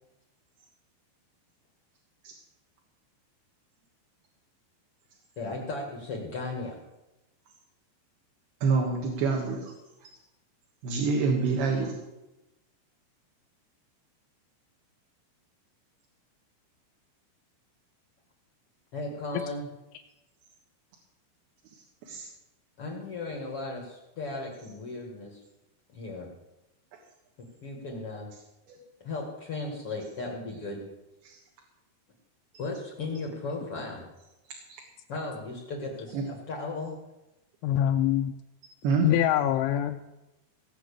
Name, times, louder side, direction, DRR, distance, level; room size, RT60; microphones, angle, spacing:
voice 1, 5.4-6.8 18.9-19.7 22.8-25.4 25.9-26.3 27.4-28.3 29.0-30.8 32.6-34.0 35.1-37.0, left 3 dB, 60° left, 0 dB, 1.5 m, -36 dB
voice 2, 8.6-9.7 10.0-10.1 10.8-12.0 21.7-22.3 28.7-28.8 31.2-31.4 34.7-34.8 36.1-36.3 38.8-39.1, right 4 dB, 65° right, -1 dB, 3.2 m, -27 dB
voice 3, 37.6-38.3 39.0-40.0, left 11 dB, 85° left, 4 dB, 2.9 m, -24 dB
18.0 x 6.0 x 8.4 m, 1.0 s
omnidirectional pair, 5.5 m